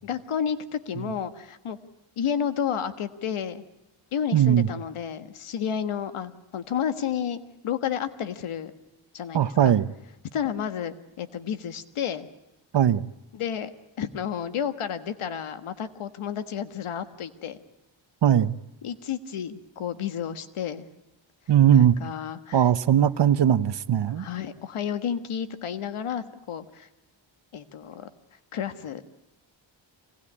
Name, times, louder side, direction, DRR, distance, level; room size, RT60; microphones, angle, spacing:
voice 1, 0.0-1.8 2.2-3.6 4.1-7.4 7.6-8.7 9.1-9.7 10.3-12.3 13.3-13.7 14.0-17.6 18.8-20.9 21.7-22.7 24.2-26.9 27.5-28.1 28.5-29.0, left 8 dB, 90° left, 1.5 m, -31 dB
voice 2, 4.3-4.7 9.3-9.9 12.7-13.1 18.2-18.6 21.5-22.0 22.5-24.2, right 10 dB, 60° right, 0.9 m, -19 dB
24.5 x 18.5 x 9.9 m
cardioid pair, 80°, 49 cm